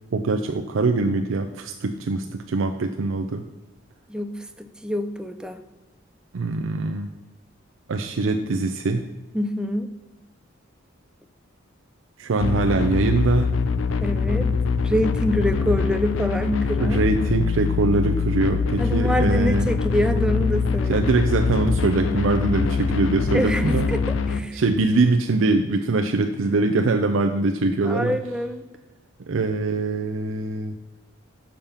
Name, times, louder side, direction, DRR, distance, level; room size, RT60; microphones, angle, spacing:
voice 1, 0.1-3.4 6.3-7.1 7.9-9.1 12.2-13.5 16.8-19.7 20.9-23.9 24.5-28.2 29.3-30.7, right 3 dB, 80° right, 5 dB, 0.5 m, -23 dB
voice 2, 4.1-5.6 9.3-9.9 14.0-14.5 14.8-17.0 18.8-21.1 23.3-24.0 24.3-24.6 27.8-28.7, equal, 5° right, 8 dB, 0.4 m, -25 dB
sound 1, 12.4-24.4, left 5 dB, 80° left, 0.5 m, -23 dB
7.3 x 5.2 x 5.5 m, 1.1 s
head